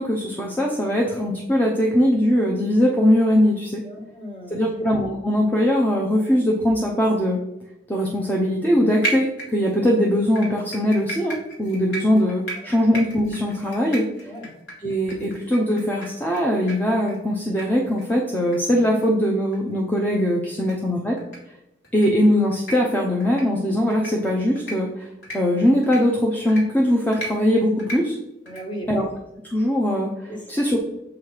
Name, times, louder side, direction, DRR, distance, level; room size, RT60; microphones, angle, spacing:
voice 1, 0.0-3.8 4.5-7.4 7.9-14.3 14.8-21.2 21.9-25.1 25.3-28.2 28.9-29.1 29.4-30.8, equal, 10° left, -1 dB, 0.6 m, -21 dB
voice 2, 3.8-4.8 12.7-12.8 13.6-13.7 14.2-14.5 28.4-28.9 30.3-30.6, equal, 25° left, -2 dB, 1.7 m, -37 dB
sound 1, 9.0-9.9 10.4-16.4 16.7-16.8 17.1-17.2 17.6-17.7 18.0-18.1 18.5-18.6 19.0-19.1 19.5-19.6 20.6-20.7 21.2-21.4 21.8-22.1 22.5-22.8 23.2-23.4 23.9-24.1 24.6-24.7 25.2-25.4 25.8-26.0 26.5-26.6 27.1-27.3 27.8-28.0 28.5-28.6, right 2 dB, 75° left, 2.2 m, -32 dB
7.5 x 3.2 x 5.6 m, 0.89 s
head